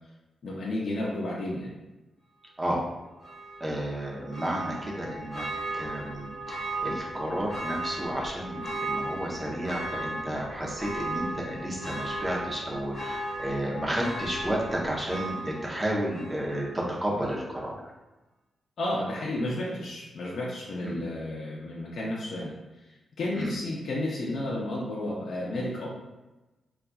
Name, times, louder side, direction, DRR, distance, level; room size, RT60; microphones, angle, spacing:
voice 1, 0.4-1.7 18.8-22.5 23.2-25.9, left 1 dB, 60° left, -5 dB, 0.5 m, -32 dB
Church bell, 3.2-16.9 17.2-17.3, right 1 dB, 25° left, 1.2 m, -36 dB
voice 2, 3.6-5.5 5.7-17.9 20.8-21.0 23.3-23.5, right 1 dB, 15° right, -4 dB, 0.7 m, -32 dB
3.9 x 2.4 x 2.3 m, 1.1 s
wide cardioid pair, 120°, 0 cm